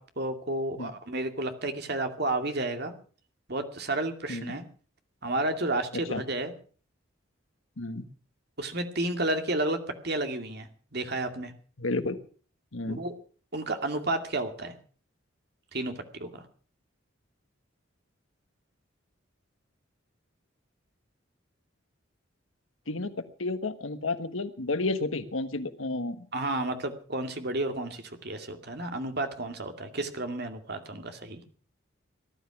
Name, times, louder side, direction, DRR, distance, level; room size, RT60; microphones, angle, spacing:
voice 1, 0.0-2.9 3.5-4.6 5.2-6.5 8.6-11.5 12.8-13.1 13.5-14.8 15.7-16.5 26.3-31.4, right 2 dB, 55° right, 6 dB, 2.4 m, -31 dB
voice 2, 7.8-8.1 11.8-12.2 12.7-13.0 22.9-26.3, left 2 dB, 80° left, 11 dB, 1.4 m, -31 dB
18.0 x 12.0 x 6.1 m, 0.41 s
head